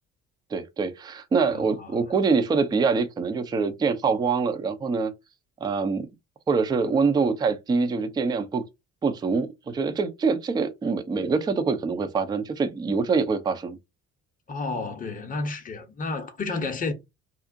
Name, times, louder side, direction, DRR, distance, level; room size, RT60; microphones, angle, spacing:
voice 1, 0.5-5.1 5.6-6.1 6.5-8.6 9.0-13.8, right 4 dB, 10° right, 0.3 m, -25 dB
voice 2, 1.5-2.0 14.5-16.9, left 3 dB, 20° left, 0.7 m, -31 dB
2.5 x 2.0 x 2.6 m
figure-of-eight pair, 50°, 43 cm